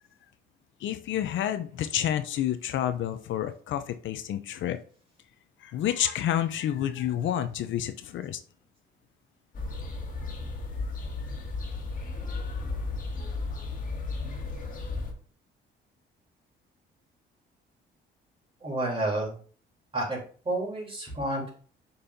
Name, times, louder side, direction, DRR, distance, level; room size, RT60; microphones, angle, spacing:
voice 1, 0.8-4.8 5.6-8.4, left 11 dB, 75° left, 10 dB, 0.6 m, -29 dB
sound 1, 9.5-15.1, left 3 dB, 45° left, 1.7 m, -34 dB
voice 2, 18.6-19.3 19.9-20.2 20.5-21.5, right 1 dB, 25° right, -3 dB, 3.4 m, -30 dB
6.8 x 5.4 x 2.7 m, 0.43 s
cardioid pair, 90°, 20 cm